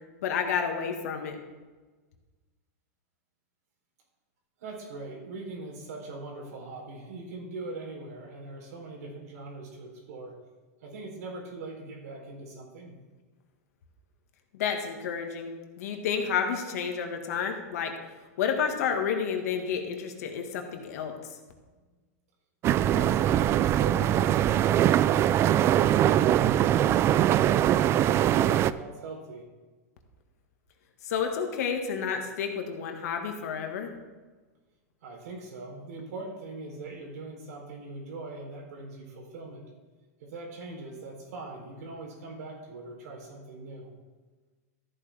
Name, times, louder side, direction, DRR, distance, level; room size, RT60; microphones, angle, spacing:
voice 1, 0.2-1.4 14.5-17.9 18.4-21.1 31.0-33.9, left 7 dB, 70° left, 4 dB, 1.9 m, -30 dB
voice 2, 4.6-10.4 10.8-13.0 22.7-25.5 25.9-29.4 35.0-39.7 40.2-43.9, right 3 dB, 75° right, 0 dB, 3.8 m, -41 dB
sound 1, 22.6-28.7, right 11 dB, 30° right, 0.3 m, -22 dB
14.0 x 9.0 x 3.6 m, 1.3 s
hypercardioid pair, 125°, 9 cm